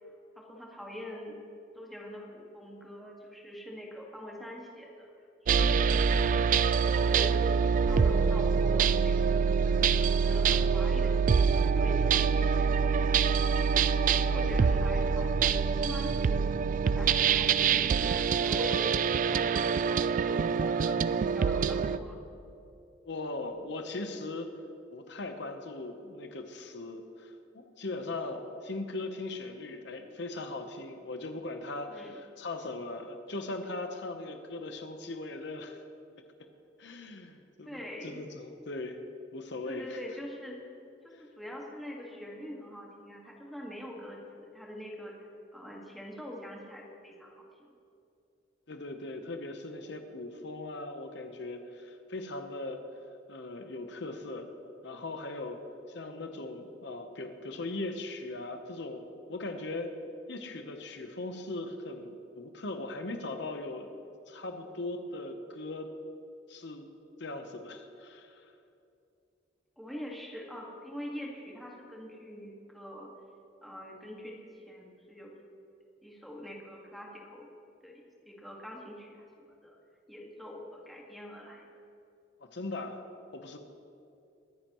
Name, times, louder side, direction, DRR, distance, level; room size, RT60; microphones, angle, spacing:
voice 1, 0.4-1.4 1.7-5.1 5.5-6.3 6.8-7.5 7.8-9.2 9.5-12.8 14.1-16.4 16.8-21.0 21.3-22.2 31.9-32.2 37.6-38.2 39.7-40.6 41.0-45.1 45.5-47.7 69.8-73.1 73.6-74.4 74.7-75.3 76.0-77.5 77.8-79.7 80.1-81.7, left 1 dB, ahead, -3 dB, 1.8 m, -44 dB
sound 1, 5.5-22.0, right 6 dB, 45° right, 0.3 m, -25 dB
voice 2, 23.0-24.5 24.9-35.8 36.8-37.7 38.0-39.0 39.3-40.0 41.1-41.2 48.7-52.8 53.3-54.5 54.8-55.6 55.9-59.0 59.3-59.9 60.3-63.9 64.3-65.9 66.5-66.9 67.2-68.5 82.4-83.0 83.3-83.6, left 2 dB, 70° left, 6 dB, 0.9 m, -39 dB
23.0 x 10.0 x 3.1 m, 2.7 s
head